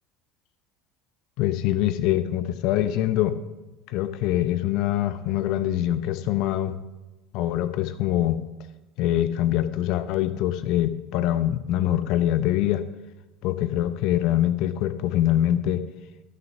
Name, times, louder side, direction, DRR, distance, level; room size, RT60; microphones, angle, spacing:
voice 1, 1.4-3.4 3.9-6.8 7.3-8.4 9.0-12.8 13.4-15.8, left 13 dB, 55° left, 12 dB, 0.8 m, -24 dB
13.5 x 6.7 x 5.6 m, 1.1 s
figure-of-eight pair, 70°, 0 cm